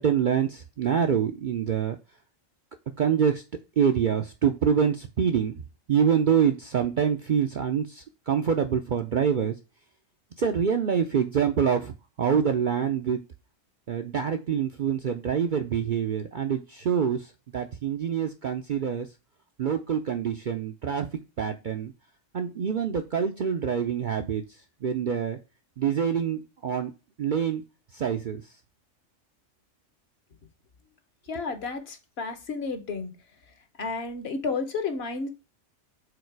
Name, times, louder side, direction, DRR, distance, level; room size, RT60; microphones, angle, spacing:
voice 1, 0.0-2.0 3.0-3.4 3.8-5.6 5.9-9.6 10.4-11.9 12.2-13.2 13.9-19.1 19.6-21.1 21.4-21.9 22.3-24.4 24.8-25.4 25.8-26.9 27.2-27.6 27.9-28.4, right 7 dB, 55° right, 5 dB, 0.5 m, -25 dB
voice 2, 31.3-33.1 33.8-35.3, left 4 dB, 55° left, 8 dB, 1.1 m, -31 dB
5.0 x 4.1 x 4.6 m, 0.29 s
omnidirectional pair, 1.3 m